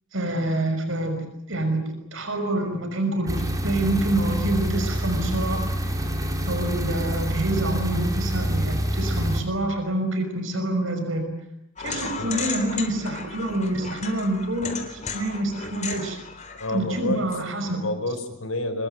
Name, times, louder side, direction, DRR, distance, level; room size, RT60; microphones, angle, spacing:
voice 1, 0.1-5.7 6.5-11.3 11.8-16.2 16.7-17.8, right 1 dB, 65° right, 6 dB, 5.7 m, -27 dB
sound 1, 3.3-9.4, equal, 15° right, 4.3 m, -26 dB
sound 2, 11.8-17.4, left 5 dB, 35° left, 3.9 m, -35 dB
voice 2, 16.6-17.3 17.6-18.9, left 2 dB, 80° left, 8 dB, 5.1 m, -29 dB
25.5 x 22.5 x 9.2 m, 0.75 s
head